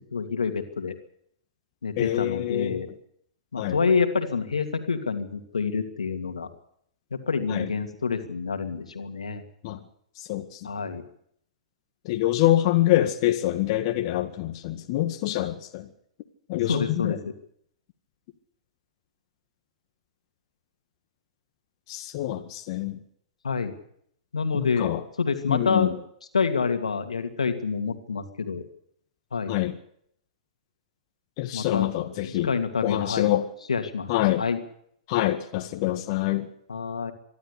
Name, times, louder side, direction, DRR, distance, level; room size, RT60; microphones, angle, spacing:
voice 1, 0.1-0.9 1.8-2.9 3.5-6.5 7.1-9.4 10.6-11.0 16.7-17.2 23.4-23.7 24.3-24.9 25.2-25.9 26.3-28.6 29.3-29.6 31.5-31.9 32.2-33.3 33.7-34.1 34.4-34.6 36.7-37.1, left 5 dB, 85° left, 7 dB, 2.7 m, -27 dB
voice 2, 2.0-2.8 3.6-3.8 7.5-7.7 9.6-9.8 10.2-10.7 12.1-15.9 16.5-17.2 21.9-23.0 24.5-25.0 25.5-26.0 29.5-29.7 31.4-32.5 32.8-33.5 34.1-34.4 35.1-36.5, left 14 dB, 50° left, 5 dB, 1.9 m, -25 dB
24.5 x 12.5 x 8.4 m, 0.68 s
hypercardioid pair, 115°, 3 cm